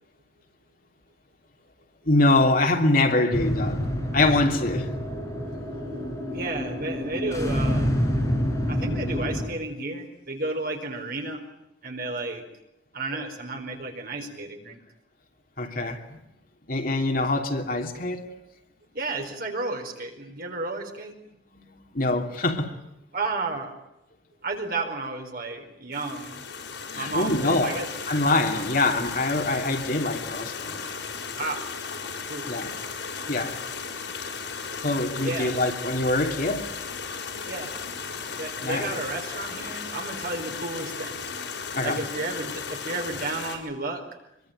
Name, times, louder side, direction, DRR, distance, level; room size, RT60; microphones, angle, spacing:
voice 1, 2.1-3.8 4.1-4.9 15.6-16.2 16.7-18.3 21.5-22.7 26.9-27.8 28.1-30.8 32.5-32.7 33.3-33.6 34.8-36.7 38.6-38.9 41.7-42.0, left 2 dB, 50° left, 3.0 m, -24 dB
sound 1, 3.3-9.5, equal, 15° left, 6.8 m, -27 dB
voice 2, 6.3-7.9 8.3-8.4 8.7-11.4 11.8-12.4 12.9-14.8 18.9-21.1 23.1-23.8 24.4-26.4 26.9-27.9 28.5-28.6 31.3-31.7 32.2-32.5 35.2-35.6 37.5-37.7 38.4-41.3 41.8-44.0, right 2 dB, 55° right, 4.7 m, -32 dB
sound 2, 25.9-43.6, left 5 dB, 80° left, 6.1 m, -35 dB
25.0 x 23.0 x 9.2 m
head